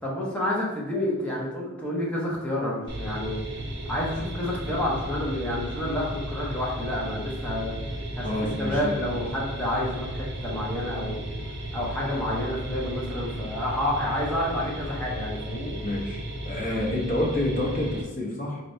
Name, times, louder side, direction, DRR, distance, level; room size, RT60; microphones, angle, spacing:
voice 1, 0.0-3.4 3.9-7.8 8.1-8.3 8.6-11.3 11.7-15.8, left 1 dB, 5° left, -5 dB, 0.9 m, -29 dB
sound 1, 2.9-18.0, right 1 dB, 55° right, 0.7 m, -34 dB
voice 2, 8.2-9.0 15.8-18.6, left 1 dB, 40° left, -3 dB, 1.0 m, -28 dB
4.1 x 3.3 x 2.7 m, 1.1 s
head